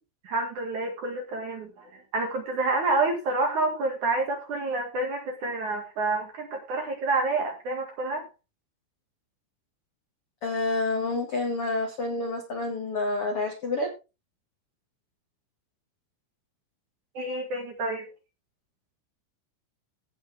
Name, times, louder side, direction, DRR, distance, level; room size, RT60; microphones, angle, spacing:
voice 1, 0.2-8.3 17.1-18.1, right 2 dB, 50° right, 3 dB, 2.5 m, -28 dB
voice 2, 10.4-13.9, left 2 dB, 55° left, 2 dB, 1.6 m, -28 dB
17.0 x 6.0 x 3.5 m, 0.28 s
omnidirectional pair, 5.7 m